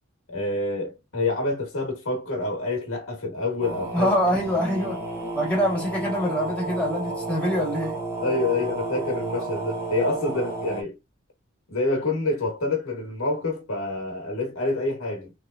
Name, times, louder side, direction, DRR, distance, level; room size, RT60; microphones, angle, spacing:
voice 1, 0.3-4.1 8.2-11.0 11.7-15.3, left 2 dB, 75° left, 1.4 m, -27 dB
sound 1, 3.6-10.8, right 2 dB, 15° right, 0.9 m, -32 dB
voice 2, 3.9-5.0 5.3-8.0, equal, 5° left, 1.8 m, -24 dB
3.3 x 3.1 x 2.5 m
head